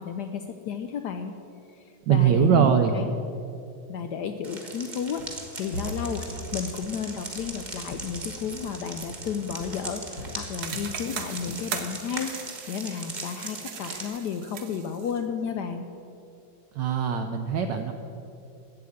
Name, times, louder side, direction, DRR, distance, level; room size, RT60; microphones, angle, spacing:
voice 1, 0.0-1.3 1.7-3.1 3.9-5.3 5.6-6.2 6.5-15.9, left 7 dB, 80° left, 7 dB, 0.9 m, -33 dB
voice 2, 2.1-3.0 16.7-17.9, right 7 dB, 75° right, 5 dB, 1.1 m, -21 dB
sound 1, 4.4-14.1, right 3 dB, 25° right, 1.0 m, -39 dB
Walk footsteps, 5.2-5.5 5.7-8.8 9.0-9.3 9.6-11.0 11.3-11.7, left 1 dB, 45° left, 1.3 m, -39 dB
sound 2, 10.6-15.2, right 7 dB, 60° right, 1.2 m, -39 dB
8.3 x 7.9 x 8.5 m, 2.7 s
omnidirectional pair, 2.3 m